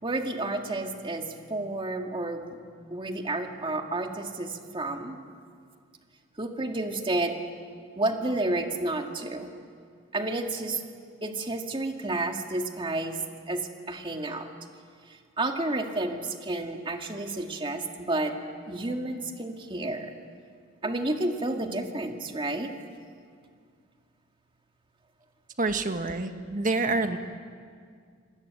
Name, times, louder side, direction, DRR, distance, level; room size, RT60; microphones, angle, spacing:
voice 1, 0.0-2.6 2.9-5.2 6.4-7.3 8.0-9.5 10.1-10.8 11.2-13.2 13.5-14.5 15.4-18.3 18.7-20.1 20.8-22.7, right 2 dB, 25° right, 4 dB, 2.0 m, -31 dB
voice 2, 25.6-27.2, right 3 dB, 40° right, 7 dB, 1.5 m, -27 dB
26.5 x 20.0 x 9.3 m, 2.1 s
head